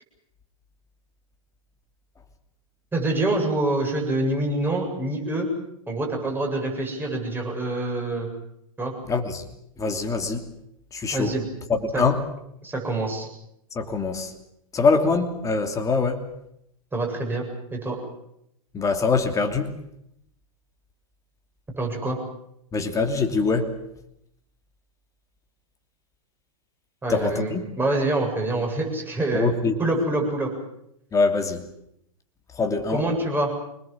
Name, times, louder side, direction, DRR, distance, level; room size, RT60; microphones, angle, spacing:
voice 1, 2.9-5.5 5.9-8.3 8.8-8.9 11.1-11.4 11.9-12.0 12.6-13.3 16.9-17.5 17.7-18.0 21.8-22.2 27.0-29.5 29.8-30.5 32.9-33.5, right 2 dB, 10° right, 7.8 m, -26 dB
voice 2, 9.1-9.4 9.8-10.4 10.9-11.3 11.7-12.2 13.7-14.3 14.7-16.2 18.7-19.7 22.7-23.7 27.1-27.6 29.3-29.7 31.1-31.6 32.6-33.0, left 4 dB, 20° left, 2.9 m, -23 dB
25.5 x 20.5 x 7.5 m
hypercardioid pair, 105°, 18 cm